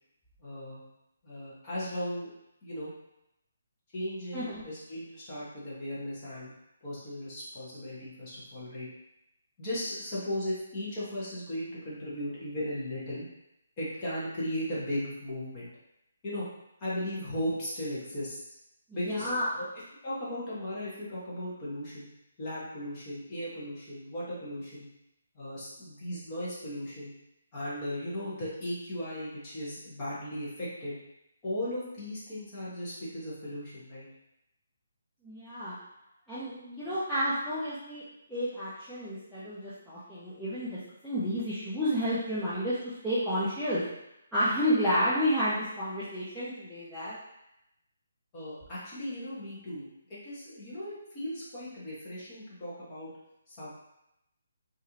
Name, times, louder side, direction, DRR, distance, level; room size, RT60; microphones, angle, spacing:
voice 1, 0.4-0.8 1.2-2.3 2.6-2.9 3.9-6.5 6.8-8.9 9.6-13.2 13.8-15.7 16.2-16.5 16.8-18.4 18.9-19.3 19.6-22.1 22.4-24.9 25.3-27.1 27.5-31.0 31.4-34.1 48.3-53.1 53.5-53.7, left 1 dB, 20° left, -9 dB, 0.8 m, -36 dB
voice 2, 18.9-19.5 35.2-35.8 36.3-38.0 38.3-43.8 44.3-47.2, equal, ahead, -15 dB, 0.4 m, -31 dB
3.0 x 2.4 x 2.7 m, 0.85 s
hypercardioid pair, 175°, 0 cm